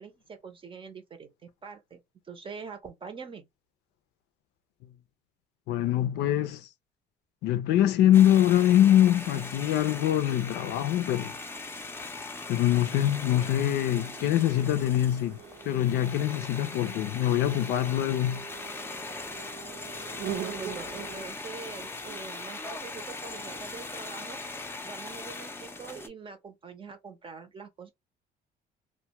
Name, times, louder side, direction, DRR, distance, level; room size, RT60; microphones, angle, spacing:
voice 1, 0.0-1.3 1.6-3.5 19.9-27.9, right 5 dB, 30° right, 0.6 m, -44 dB
voice 2, 5.7-6.7 7.4-11.4 12.5-15.4 15.6-18.4, left 12 dB, 80° left, 0.5 m, -24 dB
sound 1, 8.1-26.1, left 3 dB, 15° left, 0.5 m, -40 dB
sound 2, 12.8-21.3, right 9 dB, 75° right, 0.7 m, -43 dB
2.3 x 2.2 x 2.8 m
cardioid pair, 110°, 17 cm